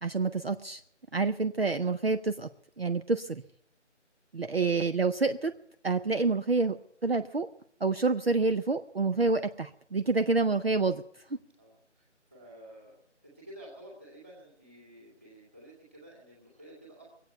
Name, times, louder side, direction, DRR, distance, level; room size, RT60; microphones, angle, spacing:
voice 1, 0.0-0.8 1.1-2.5 2.8-3.4 4.3-5.5 5.8-7.5 7.8-11.0 11.3-11.4, right 3 dB, 55° right, 8 dB, 0.7 m, -28 dB
voice 2, 11.6-17.0, right 1 dB, 10° right, -5 dB, 2.2 m, -52 dB
21.5 x 8.4 x 8.1 m, 0.72 s
figure-of-eight pair, 175°, 36 cm